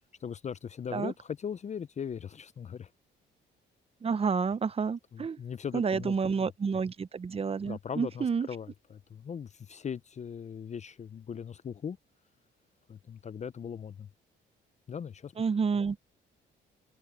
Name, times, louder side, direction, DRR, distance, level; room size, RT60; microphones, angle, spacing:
voice 1, 0.2-2.9 5.1-6.5 7.6-12.0 12.9-14.1 14.9-15.3, left 7 dB, 35° left, 0.5 m, -39 dB
voice 2, 4.0-5.4 5.7-8.5 15.4-16.0, right 5 dB, 30° right, 0.7 m, -29 dB
cardioid pair, 90°, 20 cm